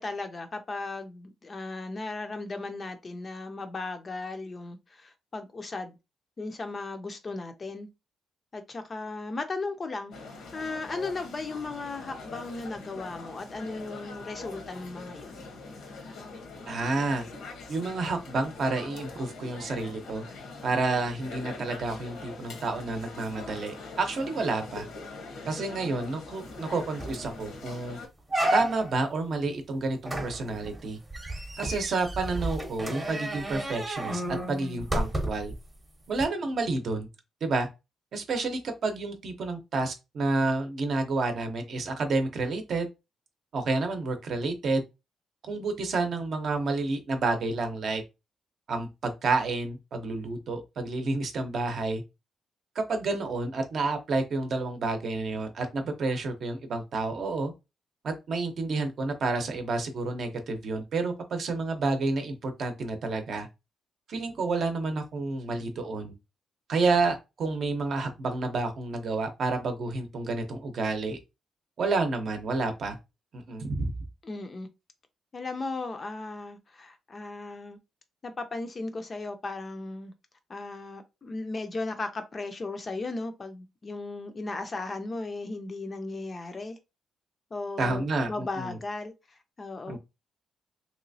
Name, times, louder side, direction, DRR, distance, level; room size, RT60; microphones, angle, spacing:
voice 1, 0.0-6.0 6.4-7.9 8.5-10.2 10.5-15.4 74.2-74.7 75.3-77.8 78.2-80.1 80.5-86.8 87.5-89.1 89.6-90.0, left 3 dB, 25° left, 0.4 m, -36 dB
sound 1, 10.1-28.1, left 3 dB, 85° left, 1.0 m, -43 dB
voice 2, 16.7-17.2 17.7-20.2 20.6-24.9 25.4-28.0 28.5-31.0 31.6-35.5 36.1-37.1 37.4-37.7 38.1-42.9 43.5-44.8 45.5-48.0 48.7-52.0 52.7-57.5 58.0-63.5 64.1-66.1 66.7-71.2 71.8-73.0 73.3-73.9 87.8-88.8 89.9-90.0, right 3 dB, 50° right, 0.7 m, -29 dB
sound 2, 26.6-26.7 27.0-27.3 27.7-27.8 28.3-29.0 30.1-35.5 36.2-36.3, right 1 dB, 15° right, 0.8 m, -31 dB
3.2 x 2.9 x 2.6 m
cardioid pair, 155°, 0 cm